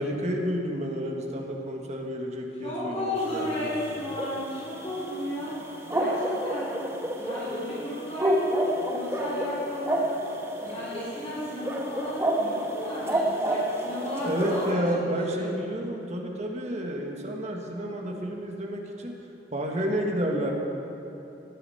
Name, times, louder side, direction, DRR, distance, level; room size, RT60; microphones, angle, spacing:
voice 1, 0.0-3.7 14.2-19.1 19.5-20.5, equal, 40° right, 1 dB, 1.6 m, -30 dB
voice 2, 2.6-5.5 5.9-6.7 7.2-10.0 10.6-15.0 15.3-15.5, left 1 dB, 35° left, -8 dB, 3.9 m, -33 dB
sound 1, 3.2-14.7, right 1 dB, 15° right, 1.2 m, -30 dB
17.5 x 10.0 x 5.7 m, 3.0 s
head